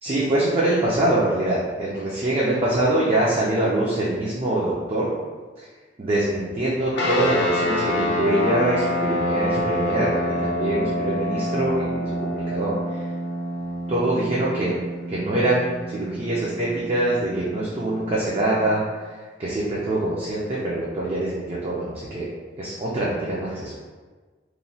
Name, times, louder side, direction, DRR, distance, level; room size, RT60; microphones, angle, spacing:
voice 1, 0.0-5.1 6.0-13.0 13.9-14.8 15.1-19.1 19.4-22.3 22.6-23.8, right 1 dB, 35° right, -6 dB, 0.4 m, -24 dB
sound 1, 6.9-18.8, left 1 dB, 65° left, 0.5 m, -27 dB
3.0 x 2.1 x 2.7 m, 1.4 s
head